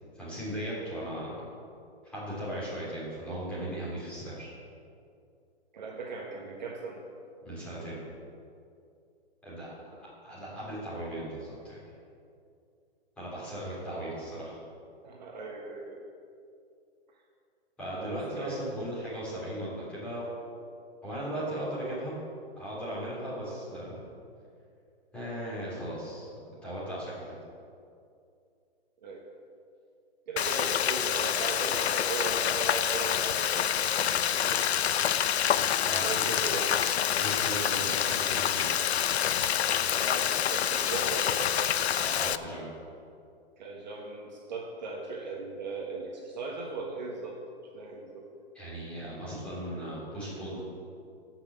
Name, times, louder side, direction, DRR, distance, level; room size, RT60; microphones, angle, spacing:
voice 1, 0.1-1.4 2.0-4.5 7.4-8.0 9.4-9.9 10.2-11.8 13.2-14.6 17.8-20.3 21.0-22.2 22.5-23.9 25.1-26.3 26.6-27.4 34.1-34.2 35.8-36.5 37.1-38.7 42.0-42.7 48.5-50.6, right 1 dB, 5° left, -9 dB, 3.4 m, -37 dB
voice 2, 5.7-7.0 9.8-10.0 13.3-13.6 15.0-16.0 17.9-18.6 29.0-29.2 30.3-34.1 34.4-34.6 35.5-36.7 39.9-41.5 43.6-47.4 47.7-48.3, right 3 dB, 45° right, -1 dB, 1.5 m, -38 dB
Frying (food), 30.4-42.4, left 9 dB, 85° left, 0.6 m, -27 dB
15.0 x 6.1 x 7.4 m, 2.5 s
hypercardioid pair, 165°, 32 cm